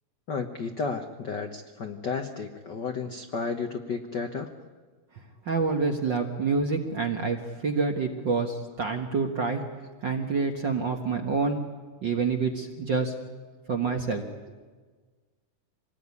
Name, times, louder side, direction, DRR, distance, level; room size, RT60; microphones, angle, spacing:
voice 1, 0.3-4.5, left 5 dB, 70° left, 5 dB, 1.0 m, -32 dB
voice 2, 5.4-9.6 10.0-11.6 12.0-13.1 13.7-14.2, right 4 dB, 50° right, 4 dB, 1.4 m, -27 dB
25.5 x 19.5 x 9.8 m, 1.4 s
omnidirectional pair, 3.9 m